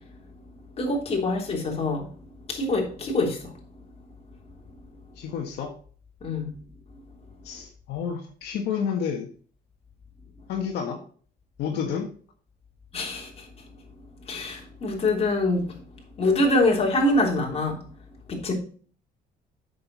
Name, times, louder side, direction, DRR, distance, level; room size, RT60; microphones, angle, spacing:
voice 1, 0.8-2.1 2.5-3.5 6.2-6.5 12.9-13.5 14.3-15.7 16.2-17.8 18.3-18.5, left 2 dB, 35° left, 3.3 m, -24 dB
voice 2, 5.1-5.7 7.4-9.3 10.5-11.0 11.6-12.1, left 7 dB, 75° left, 1.5 m, -30 dB
8.5 x 6.7 x 4.1 m
cardioid pair, 110°, 17 cm